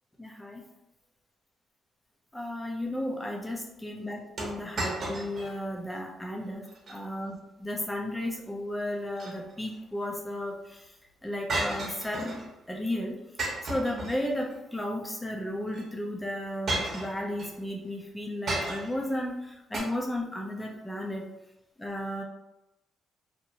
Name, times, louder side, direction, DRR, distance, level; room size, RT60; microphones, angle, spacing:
voice 1, 0.2-0.6 2.3-6.6 6.9-10.8 11.2-12.4 12.7-13.2 13.6-21.2 21.8-22.2, left 1 dB, 10° left, 0 dB, 0.6 m, -34 dB
sound 1, 4.4-5.6 5.9-6.0 6.6-7.0 8.9-9.8 11.5-12.5 13.4-14.6 15.7-15.8 16.7-17.5 18.5-19.1 19.7-19.8, right 2 dB, 55° right, 0.9 m, -33 dB
2.8 x 2.2 x 2.8 m, 0.94 s
cardioid pair, 90°, 0 cm